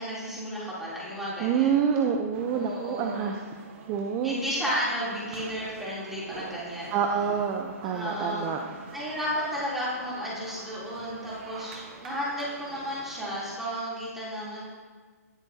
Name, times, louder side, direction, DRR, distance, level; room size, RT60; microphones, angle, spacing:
voice 1, 0.0-1.7 2.5-3.4 4.2-6.9 7.9-8.5 8.9-14.6, equal, 5° right, -9 dB, 3.3 m, -33 dB
voice 2, 1.4-3.3 3.9-4.4 6.9-8.6, right 7 dB, 30° right, 3 dB, 0.7 m, -27 dB
sound 1, 2.3-13.6, right 5 dB, 45° right, 1.3 m, -46 dB
18.0 x 6.9 x 2.8 m, 1.5 s
hypercardioid pair, 135°, 9 cm